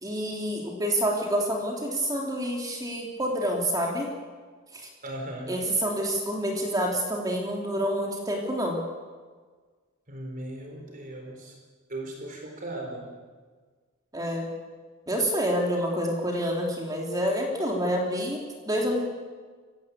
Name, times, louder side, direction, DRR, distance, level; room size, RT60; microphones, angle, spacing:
voice 1, 0.0-4.1 4.7-4.9 5.5-8.8 14.1-14.5 15.1-19.1, equal, 20° right, 0 dB, 3.1 m, -28 dB
voice 2, 5.0-5.5 10.1-11.5 11.9-13.1, right 1 dB, 40° right, 1 dB, 4.4 m, -37 dB
24.0 x 16.5 x 8.5 m, 1.5 s
head